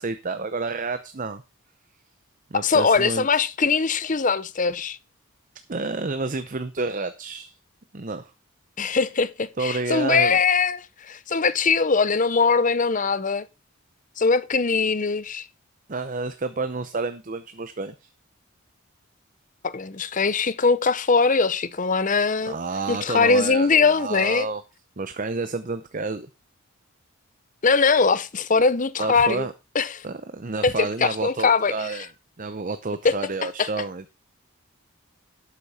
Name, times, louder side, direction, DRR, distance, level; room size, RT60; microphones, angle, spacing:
voice 1, 0.0-1.4 2.5-3.4 5.7-7.6 7.9-8.3 8.9-9.0 9.6-10.4 15.9-18.1 22.4-24.6 25.0-26.3 29.0-29.5 30.0-32.1 32.4-34.1, right 3 dB, 40° right, 0.7 m, -30 dB
voice 2, 2.5-5.0 8.8-13.5 14.2-15.5 19.6-22.6 22.9-24.5 27.6-29.5 29.7-30.0 30.6-31.7 33.0-33.1 33.6-33.7, left 4 dB, 35° left, 0.7 m, -21 dB
12.0 x 8.4 x 4.2 m
head